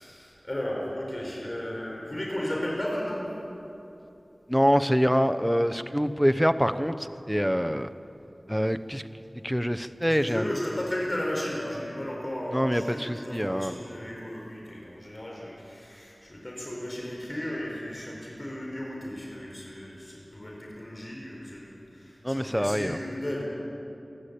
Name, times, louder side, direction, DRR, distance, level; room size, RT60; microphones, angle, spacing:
voice 1, 0.0-3.3 10.1-23.4, left 1 dB, 40° left, -3 dB, 5.1 m, -34 dB
voice 2, 4.5-7.9 8.5-9.0 9.4-10.5 12.5-13.7 22.2-23.0, equal, ahead, 11 dB, 0.9 m, -25 dB
28.5 x 12.0 x 8.6 m, 2.9 s
wide cardioid pair, 40°, 0 cm